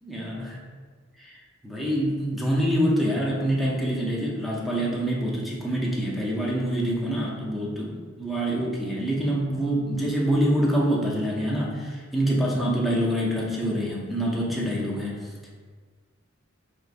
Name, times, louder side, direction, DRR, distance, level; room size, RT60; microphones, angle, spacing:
voice 1, 0.1-0.6 1.2-1.3 1.6-15.3, right 1 dB, ahead, -4 dB, 0.5 m, -26 dB
4.4 x 2.4 x 2.5 m, 1.5 s
head